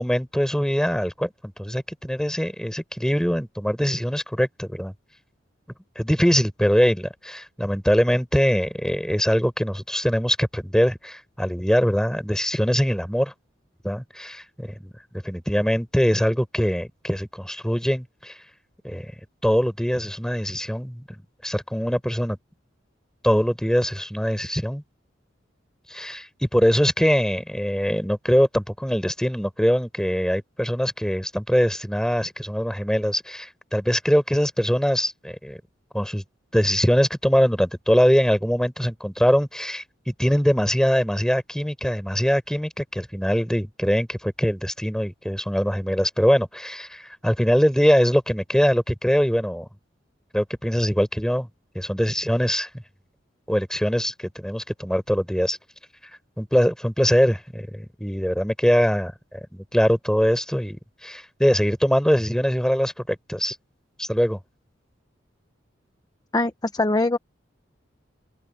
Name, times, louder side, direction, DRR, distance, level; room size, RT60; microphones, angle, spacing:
voice 1, 0.0-4.9 6.0-13.3 13.8-14.9 15.2-18.3 18.8-19.1 19.4-21.0 21.4-22.4 23.2-24.8 25.9-35.6 35.9-36.2 36.5-49.7 50.3-51.5 51.8-52.7 53.5-55.6 56.4-60.8 61.0-63.6 64.0-64.4, equal, 5° left, 5.1 m, -22 dB
voice 2, 66.3-67.2, left 2 dB, 20° left, 0.8 m, -22 dB
head